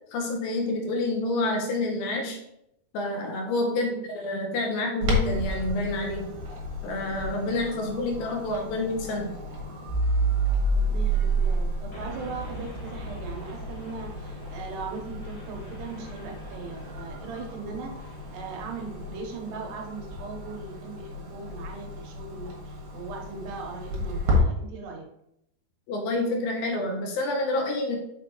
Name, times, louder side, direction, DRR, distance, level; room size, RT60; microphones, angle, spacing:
voice 1, 0.1-2.4 2.9-6.3 6.8-9.3 25.9-28.0, left 2 dB, 75° left, 1 dB, 2.4 m, -28 dB
voice 2, 3.7-4.0 10.7-25.1, right 4 dB, 85° right, 1 dB, 3.2 m, -39 dB
Clock, 5.0-24.4, left 2 dB, 65° right, 2.7 m, -35 dB
sound 1, 6.9-19.6, right 3 dB, 35° left, 1.0 m, -31 dB
6.0 x 5.7 x 3.0 m, 0.79 s
omnidirectional pair, 4.6 m